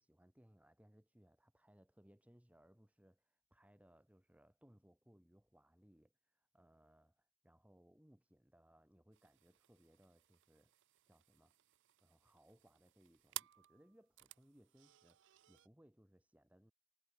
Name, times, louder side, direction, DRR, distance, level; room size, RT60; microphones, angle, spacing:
voice 1, 0.0-10.8 11.1-11.5 12.0-16.7, equal, 5° right, 1.2 m, -68 dB
sound 1, 9.1-15.7, right 16 dB, 55° right, 0.4 m, -56 dB
head